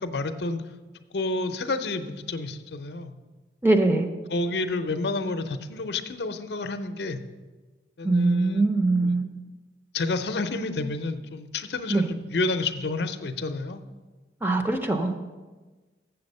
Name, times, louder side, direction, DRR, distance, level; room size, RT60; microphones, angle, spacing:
voice 1, 0.0-0.6 1.1-3.1 4.3-7.2 8.0-8.7 9.0-9.2 9.9-13.8, left 3 dB, 65° left, 9 dB, 0.5 m, -30 dB
voice 2, 3.6-4.1 8.0-9.3 11.9-12.1 14.4-15.2, right 2 dB, 10° right, 4 dB, 0.6 m, -22 dB
7.5 x 6.9 x 5.3 m, 1.3 s
head